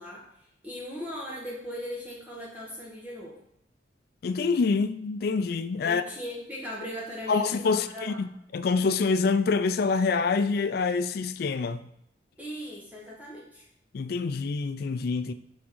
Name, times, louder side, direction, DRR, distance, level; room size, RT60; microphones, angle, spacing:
voice 1, 0.0-3.4 5.8-8.2 12.4-13.7, equal, 10° right, 1.1 m, -39 dB
voice 2, 4.2-6.0 7.3-11.8 13.9-15.3, left 4 dB, 55° left, 0.3 m, -26 dB
6.2 x 3.6 x 4.5 m
head